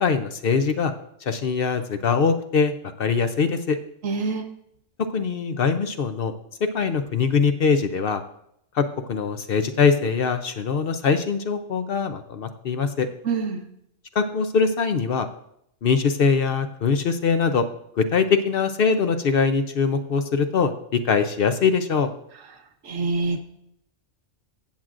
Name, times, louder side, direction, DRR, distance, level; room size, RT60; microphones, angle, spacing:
voice 1, 0.0-0.9 1.3-3.8 5.1-6.3 6.6-8.2 8.8-13.1 14.2-15.3 15.8-17.6 18.0-22.1, left 5 dB, 55° left, 9 dB, 0.7 m, -22 dB
voice 2, 4.0-4.4 13.3-13.6 22.9-23.4, right 4 dB, 90° right, 4 dB, 1.5 m, -25 dB
15.5 x 7.5 x 2.5 m, 0.75 s
omnidirectional pair, 1.3 m